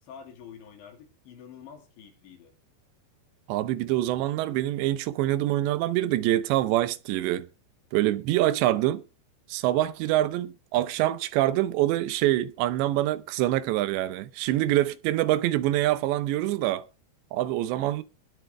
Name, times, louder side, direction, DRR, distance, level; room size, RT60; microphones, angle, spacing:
voice 1, 0.0-2.5, left 7 dB, 90° left, 5.2 m, -47 dB
voice 2, 3.5-7.5 7.9-9.0 9.5-16.9 17.3-18.0, right 15 dB, 85° right, 3.0 m, -25 dB
20.0 x 8.0 x 3.4 m
omnidirectional pair, 5.0 m